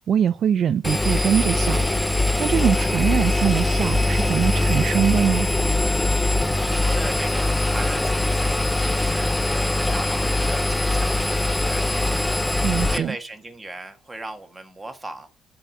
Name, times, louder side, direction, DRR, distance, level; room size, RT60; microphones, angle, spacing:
voice 1, 0.1-1.8 2.4-5.5 12.6-13.1, right 8 dB, 45° right, 0.4 m, -22 dB
Engine, 0.8-13.0, left 2 dB, 5° left, 0.6 m, -22 dB
voice 2, 6.6-12.3 12.9-15.3, right 2 dB, 10° right, 1.5 m, -37 dB
10.5 x 4.8 x 7.4 m
cardioid pair, 165°, 0 cm